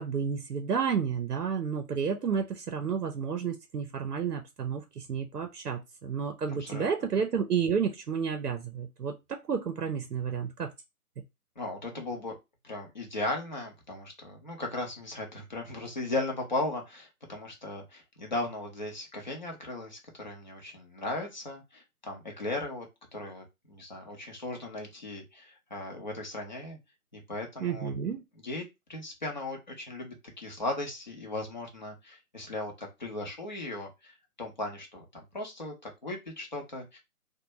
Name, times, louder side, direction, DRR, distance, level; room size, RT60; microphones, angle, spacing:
voice 1, 0.0-10.7 27.6-28.2, right 6 dB, 85° right, 0.6 m, -31 dB
voice 2, 11.6-12.4 12.6-22.9 23.1-26.8 27.1-27.9 28.4-28.6 28.9-37.0, left 2 dB, 30° left, 0.6 m, -37 dB
2.5 x 2.1 x 3.0 m
figure-of-eight pair, 145°, 46 cm